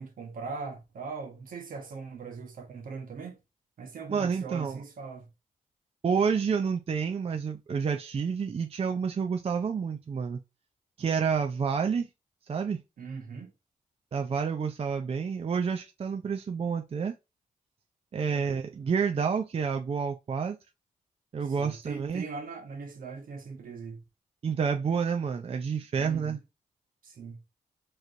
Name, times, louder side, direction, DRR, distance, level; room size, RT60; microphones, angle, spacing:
voice 1, 0.0-3.4 3.8-5.3 13.0-13.5 18.3-18.6 21.5-24.0 25.9-26.4 27.0-27.4, right 4 dB, 75° right, 1.2 m, -40 dB
voice 2, 4.1-4.8 6.0-10.4 11.0-12.1 12.5-12.8 14.1-17.1 18.1-20.6 21.3-22.2 24.4-26.4, right 6 dB, 45° right, 0.5 m, -29 dB
4.7 x 3.0 x 2.7 m
cardioid pair, 85°, 14 cm